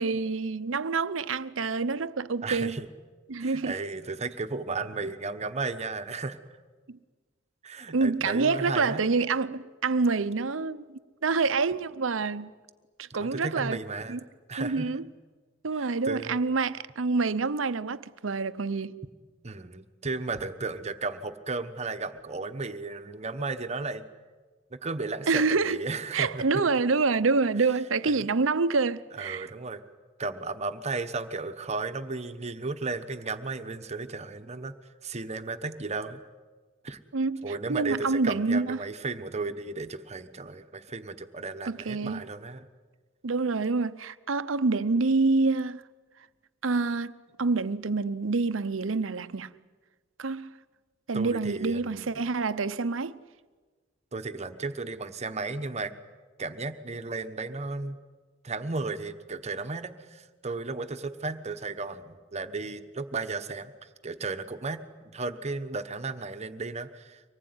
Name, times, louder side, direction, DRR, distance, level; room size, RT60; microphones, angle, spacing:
voice 1, 0.0-2.8 3.3-3.8 6.9-7.0 7.9-12.5 13.0-13.8 14.1-14.2 14.6-15.1 15.6-19.0 25.3-25.8 26.1-29.5 37.1-38.8 41.6-42.2 43.2-45.8 46.6-47.1 47.4-49.5 50.2-50.5 51.1-53.2, right 4 dB, 80° right, 0.8 m, -27 dB
voice 2, 2.4-2.9 3.4-6.4 7.6-9.0 13.1-14.2 14.5-14.9 15.8-16.4 19.4-24.0 24.7-26.4 28.0-28.2 29.2-29.8 30.2-34.7 35.0-36.2 36.8-37.0 37.4-42.7 51.1-52.1 54.1-55.9 56.4-58.0 58.4-63.7 64.0-67.3, right 3 dB, 35° right, 1.2 m, -34 dB
24.5 x 19.5 x 9.6 m
head